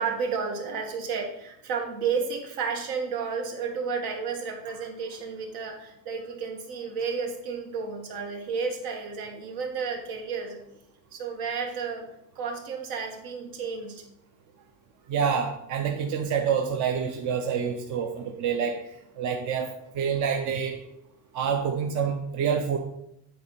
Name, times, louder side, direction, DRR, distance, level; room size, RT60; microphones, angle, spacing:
voice 1, 0.0-10.6 11.1-12.1 12.4-14.0, right 5 dB, 80° right, 2 dB, 1.9 m, -32 dB
voice 2, 15.1-18.8 19.2-19.7 19.9-20.8 21.3-22.8, right 7 dB, 55° right, 3 dB, 0.8 m, -27 dB
9.0 x 4.4 x 5.5 m, 0.78 s
cardioid pair, 175°, 35 cm